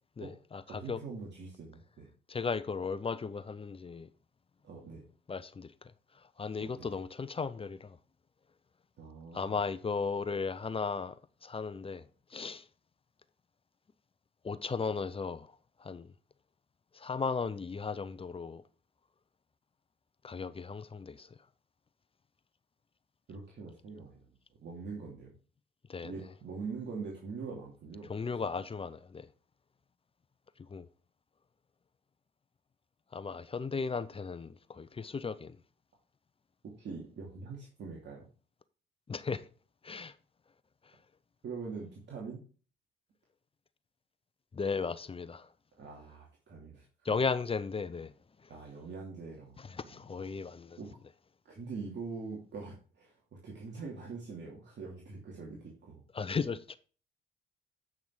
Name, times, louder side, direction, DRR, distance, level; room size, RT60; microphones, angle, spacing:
voice 1, 0.2-1.0 2.3-4.1 5.3-5.7 6.4-8.0 9.3-12.0 12.3-12.6 14.4-15.5 15.8-16.1 16.9-18.6 20.2-21.3 25.9-26.1 28.1-29.3 30.7-30.9 33.1-35.6 39.1-39.5 39.8-40.1 44.5-45.5 47.0-48.1 49.6-50.8 56.1-56.8, left 5 dB, 30° left, 0.7 m, -36 dB
voice 2, 0.7-2.1 4.6-5.0 6.6-7.0 9.0-9.6 23.3-24.3 24.6-25.3 26.0-28.1 28.4-28.5 36.8-38.3 41.4-42.4 45.8-47.1 48.5-50.3 50.8-50.9 51.4-56.0, right 4 dB, 60° right, 2.7 m, -43 dB
8.8 x 6.0 x 4.8 m
cardioid pair, 90°, 20 cm